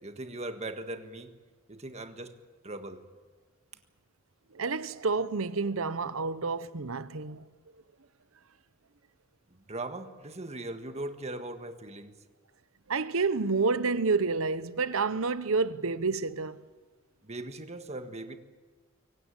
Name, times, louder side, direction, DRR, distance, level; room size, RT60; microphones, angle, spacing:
voice 1, 0.0-1.3 1.7-2.4 2.6-3.0 9.7-12.1 17.2-18.4, right 2 dB, 30° right, 1.6 m, -39 dB
voice 2, 4.5-7.5 12.9-16.6, right 4 dB, 70° right, 0.9 m, -29 dB
24.0 x 18.0 x 9.2 m
head